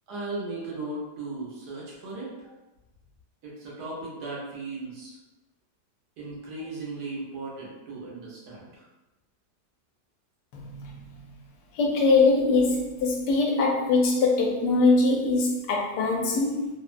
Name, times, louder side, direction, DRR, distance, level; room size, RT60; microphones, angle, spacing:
voice 1, 0.1-2.5 3.4-5.2 6.2-8.9, right 2 dB, 80° right, -5 dB, 1.4 m, -37 dB
voice 2, 10.5-11.3 11.7-16.8, left 3 dB, 85° left, 0 dB, 1.2 m, -23 dB
3.3 x 2.1 x 2.4 m, 1.0 s
omnidirectional pair, 1.7 m